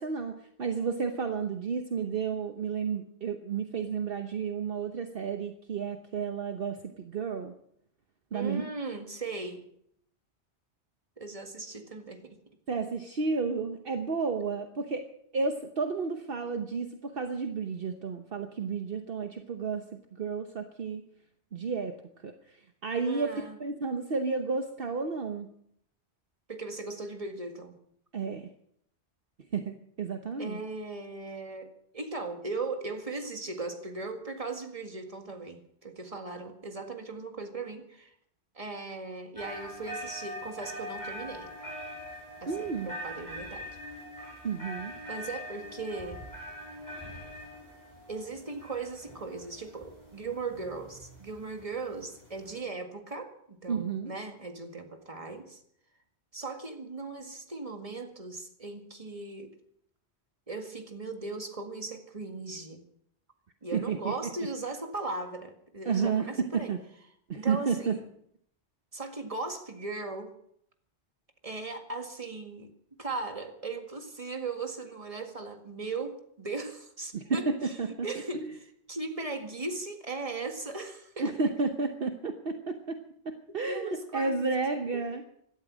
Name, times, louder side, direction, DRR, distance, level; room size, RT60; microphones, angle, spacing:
voice 1, 0.0-7.5 8.3-8.6 12.7-15.1 15.3-19.8 20.2-21.0 21.5-22.0 22.2-23.3 23.6-25.5 28.1-28.5 29.5-30.6 42.5-42.9 44.4-44.9 53.7-54.1 63.7-64.1 65.9-66.8 67.3-68.0 77.1-77.9 78.3-78.6 81.2-83.0 83.2-85.2, right 5 dB, 55° right, 6 dB, 1.2 m, -31 dB
voice 2, 8.3-9.7 11.2-12.4 23.1-23.6 26.5-27.8 30.4-38.1 38.5-41.5 42.4-43.8 45.1-46.2 48.1-55.6 56.3-59.5 60.5-62.8 63.6-66.7 67.3-68.1 68.9-70.3 71.4-72.7 73.0-77.8 78.0-78.5 78.9-81.3 83.5-84.5 84.9-85.0, right 3 dB, 30° right, 5 dB, 2.0 m, -38 dB
sound 1, 39.4-52.6, equal, 15° left, 7.0 m, -43 dB
17.0 x 12.5 x 6.2 m, 0.69 s
omnidirectional pair, 1.1 m